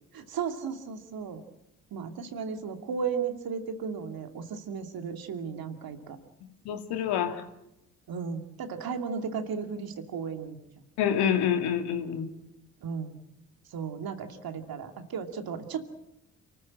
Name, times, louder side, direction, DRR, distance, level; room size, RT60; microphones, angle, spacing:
voice 1, 0.1-1.4 1.9-6.2 8.1-10.6 12.8-13.2 13.7-15.8, right 6 dB, 55° right, 7 dB, 2.6 m, -35 dB
voice 2, 6.7-7.4 11.0-12.3, left 8 dB, 70° left, 6 dB, 2.6 m, -27 dB
29.0 x 14.0 x 8.8 m, 0.86 s
hypercardioid pair, 40°, 41 cm